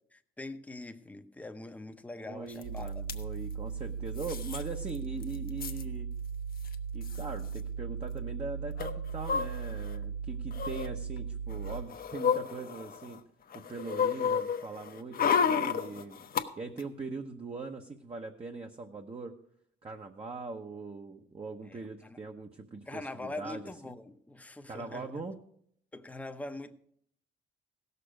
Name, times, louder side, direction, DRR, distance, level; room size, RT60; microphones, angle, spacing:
voice 1, 0.1-2.9 21.7-22.2 22.9-25.1 25.9-26.7, left 2 dB, 5° left, 7 dB, 0.8 m, -43 dB
voice 2, 2.2-6.1 6.9-13.2 13.7-16.2 16.6-19.3 19.8-23.7 24.7-25.4, right 4 dB, 30° right, 3 dB, 0.9 m, -41 dB
sound 1, 2.6-2.7 2.9-3.2 4.2-4.6 5.0-5.1 5.2-5.8 6.7-6.8 7.0-7.2 8.8-9.9 10.5-10.9 11.5-13.2 13.5-16.4 16.8-16.9, left 7 dB, 50° left, 0.9 m, -31 dB
sound 2, 2.6-11.8, right 6 dB, 80° right, 2.1 m, -37 dB
16.5 x 6.8 x 5.1 m, 0.67 s
cardioid pair, 90°, 20 cm